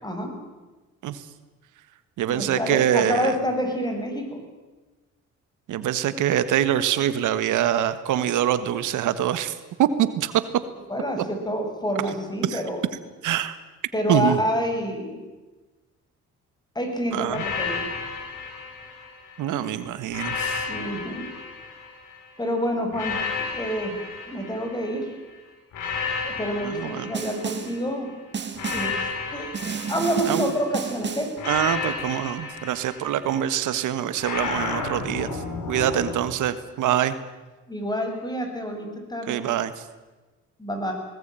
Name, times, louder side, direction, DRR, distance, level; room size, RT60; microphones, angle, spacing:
voice 1, 0.0-0.3 2.2-4.4 10.9-12.9 13.9-15.2 16.7-17.8 20.7-21.2 22.4-23.2 23.5-23.9 24.3-25.1 26.2-28.1 28.7-29.5 29.9-31.3 35.9-36.0 37.7-39.5 40.6-40.9, equal, 15° left, 4 dB, 6.7 m, -28 dB
voice 2, 2.2-3.3 5.7-9.5 9.8-10.4 12.4-12.6 13.2-13.6 14.1-14.4 17.1-17.4 19.4-20.7 26.6-27.1 30.3-30.5 31.4-37.2 39.3-39.7, right 11 dB, 80° right, 13 dB, 1.4 m, -24 dB
sound 1, 17.3-19.5 20.1-22.3 22.9-25.1 25.7-27.9 28.5-30.7 31.4-33.5 34.2-36.2, left 5 dB, 85° left, 6.1 m, -32 dB
Snare drum, 27.1-27.8 28.3-29.0 29.5-31.4, right 6 dB, 35° right, 1.9 m, -32 dB
20.5 x 19.5 x 9.0 m, 1.2 s
cardioid pair, 90°, 30 cm